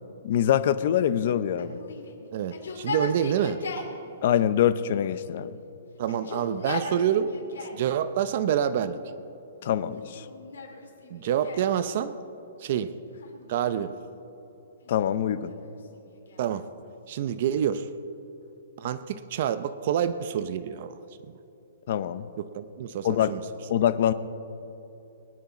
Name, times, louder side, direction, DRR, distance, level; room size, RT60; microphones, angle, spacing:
voice 1, 0.2-1.8 4.2-5.6 9.6-10.3 14.9-15.5 21.9-22.3 23.0-23.3 23.7-24.1, left 10 dB, 45° left, 13 dB, 0.6 m, -24 dB
Yell, 1.6-4.0 4.8-5.6 6.0-7.9 8.6-9.3 10.0-11.8 13.1-14.0 14.8-16.6, left 4 dB, 80° left, 2.3 m, -39 dB
voice 2, 2.3-3.6 6.0-7.3 7.6-9.0 11.1-12.1 12.6-12.9 13.5-14.0 16.4-16.7 17.1-17.9 18.8-21.0 22.4-23.4, right 9 dB, 40° right, 12 dB, 0.5 m, -27 dB
22.5 x 9.5 x 4.3 m, 3.0 s
hypercardioid pair, 170°, 0 cm